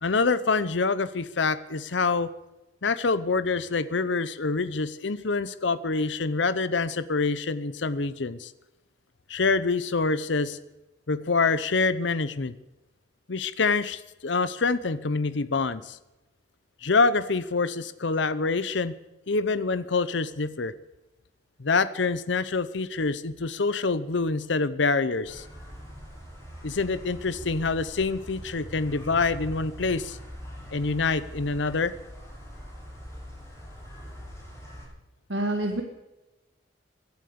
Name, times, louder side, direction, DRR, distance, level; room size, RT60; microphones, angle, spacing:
voice 1, 0.0-2.3 2.8-8.5 9.3-10.6 11.1-12.5 13.3-16.0 16.8-18.9 19.3-20.7 21.6-25.4 26.6-30.2 30.7-31.9, left 4 dB, 70° left, 15 dB, 0.8 m, -26 dB
sound 1, 25.2-34.9, equal, 15° left, 7.1 m, -42 dB
voice 2, 35.3-35.8, right 1 dB, 70° right, 4 dB, 1.6 m, -27 dB
17.5 x 11.5 x 6.9 m, 1.0 s
head